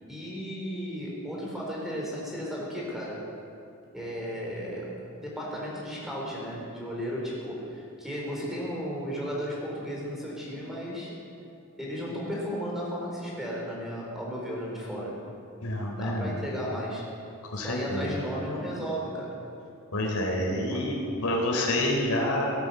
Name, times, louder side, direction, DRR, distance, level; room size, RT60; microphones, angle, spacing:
voice 1, 0.1-3.2 3.9-5.0 5.2-11.1 11.8-15.1 15.9-17.1 17.5-19.3 20.7-20.9, equal, ahead, -4 dB, 4.0 m, -34 dB
voice 2, 15.6-16.3 17.5-18.0 19.9-22.5, left 1 dB, 80° left, -1 dB, 3.5 m, -28 dB
18.0 x 9.3 x 7.9 m, 2.6 s
head